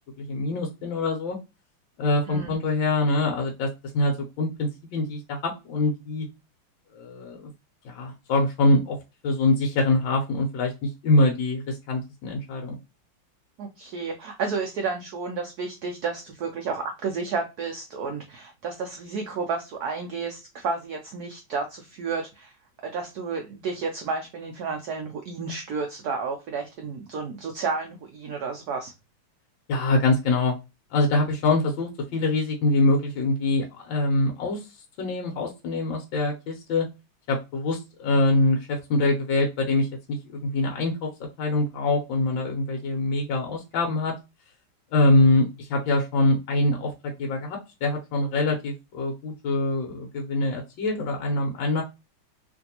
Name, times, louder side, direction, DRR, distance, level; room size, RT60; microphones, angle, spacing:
voice 1, 0.2-1.4 2.0-6.3 6.9-7.5 7.8-9.0 9.2-12.8 29.7-30.5 30.9-34.7 35.0-36.8 37.3-44.1 44.9-51.8, left 2 dB, 70° left, 1 dB, 1.4 m, -24 dB
voice 2, 13.6-22.5 22.8-28.9, right 4 dB, 80° right, 3 dB, 0.8 m, -31 dB
3.3 x 2.6 x 2.7 m, 0.25 s
omnidirectional pair, 2.2 m